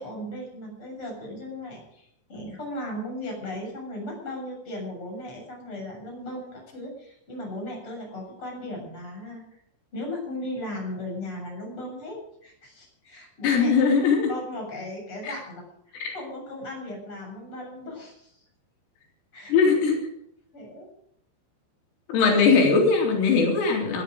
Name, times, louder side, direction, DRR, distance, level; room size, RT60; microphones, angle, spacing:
voice 1, 0.0-9.4 9.9-13.7 14.3-15.6 16.1-18.4 19.3-19.7 20.5-20.9 22.2-22.4, left 1 dB, 25° left, 0 dB, 8.0 m, -37 dB
voice 2, 13.4-14.3 15.2-15.3 15.9-16.1 19.5-20.0 22.1-24.0, left 5 dB, 90° left, 0 dB, 6.2 m, -20 dB
20.0 x 13.5 x 5.2 m, 0.67 s
omnidirectional pair, 5.7 m